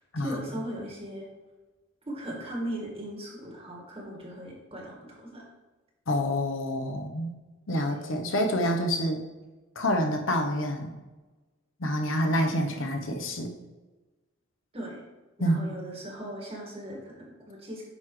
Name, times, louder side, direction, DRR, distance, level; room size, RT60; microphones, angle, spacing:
voice 1, 0.2-1.3 2.1-5.4 7.8-7.9 14.7-15.0 15.4-17.8, right 1 dB, 30° right, -2 dB, 2.0 m, -38 dB
voice 2, 6.1-7.3 7.7-9.2 9.8-10.9 11.8-13.5 15.4-15.7, equal, 75° left, 3 dB, 1.0 m, -27 dB
9.3 x 6.0 x 3.3 m, 1.2 s
head